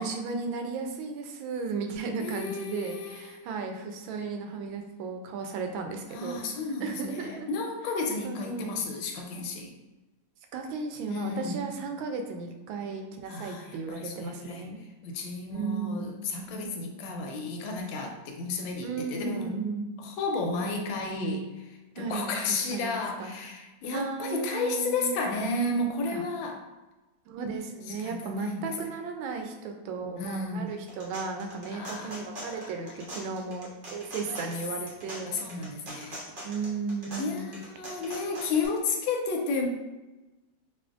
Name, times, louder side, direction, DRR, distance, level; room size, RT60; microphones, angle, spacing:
voice 1, 0.0-7.5 8.2-8.8 10.5-14.8 15.5-16.0 18.8-19.9 22.0-22.4 22.7-23.4 23.9-25.2 26.1-26.2 27.3-35.4 36.4-37.6, right 4 dB, 85° right, 4 dB, 1.4 m, -35 dB
voice 2, 2.2-3.5 6.1-9.7 11.1-11.6 13.3-14.7 15.0-19.6 20.0-21.4 22.0-26.6 28.0-28.6 30.2-30.7 31.7-32.7 34.3-34.5 35.3-36.2 37.2-39.7, left 3 dB, 85° left, 2 dB, 1.4 m, -32 dB
sound 1, 30.7-38.7, equal, 50° right, 0.6 m, -43 dB
4.9 x 2.5 x 2.4 m, 1.1 s
omnidirectional pair, 2.1 m